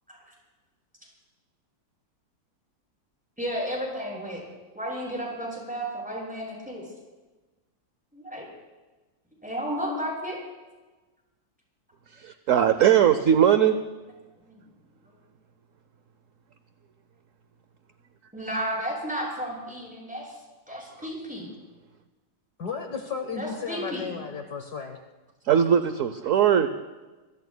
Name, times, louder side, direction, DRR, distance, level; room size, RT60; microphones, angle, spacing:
voice 1, 3.4-4.4 4.7-6.8 8.1-8.5 9.4-10.4 12.8-12.9 14.4-14.6 18.3-20.4 20.7-21.5 23.3-24.2, equal, 5° right, -4 dB, 7.7 m, -33 dB
voice 2, 12.2-13.8 25.5-26.7, right 9 dB, 60° right, 9 dB, 0.9 m, -19 dB
voice 3, 22.6-25.0, left 6 dB, 60° left, 4 dB, 1.7 m, -34 dB
25.0 x 25.0 x 2.2 m, 1.2 s
omnidirectional pair, 2.0 m